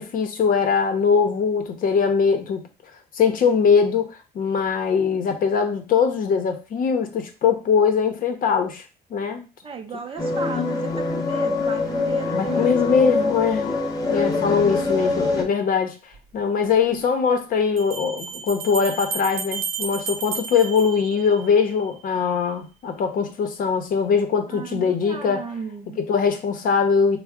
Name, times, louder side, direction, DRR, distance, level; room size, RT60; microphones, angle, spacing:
voice 1, 0.0-2.7 3.1-8.8 9.1-9.4 12.3-13.7 14.1-16.0 16.3-25.5 26.0-27.2, left 6 dB, 55° left, 6 dB, 0.7 m, -21 dB
voice 2, 9.6-13.0 14.2-15.3 24.5-26.0, right 6 dB, 35° right, 6 dB, 0.5 m, -36 dB
sound 1, 10.2-15.4, left 3 dB, 20° left, 0.7 m, -24 dB
sound 2, 16.1-16.2 17.8-21.7, right 5 dB, 65° right, 0.9 m, -32 dB
3.6 x 2.1 x 3.5 m, 0.32 s
cardioid pair, 110°, 17 cm